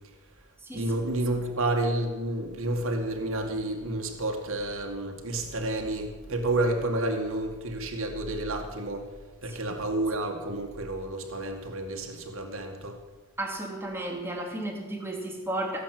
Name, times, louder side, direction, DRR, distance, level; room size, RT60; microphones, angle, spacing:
voice 1, 0.7-9.1 9.4-13.0, right 2 dB, 65° right, 2 dB, 2.2 m, -30 dB
voice 2, 13.4-15.8, right 1 dB, 10° right, 0 dB, 2.8 m, -33 dB
17.0 x 8.2 x 7.9 m, 1.2 s
head